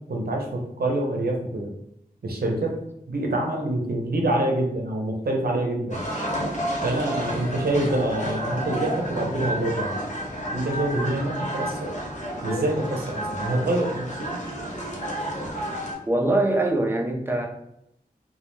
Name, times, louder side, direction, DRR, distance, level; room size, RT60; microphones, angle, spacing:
voice 1, 0.1-1.7 2.2-2.7 3.1-6.0 6.8-10.0 10.5-11.9 12.4-14.4, right 1 dB, 75° right, 0 dB, 0.6 m, -26 dB
sound 1, 5.9-15.9, equal, 50° left, 0.7 m, -30 dB
voice 2, 16.1-17.5, right 2 dB, 15° right, 1 dB, 0.5 m, -23 dB
2.2 x 2.1 x 3.0 m, 0.77 s
wide cardioid pair, 50°, 16 cm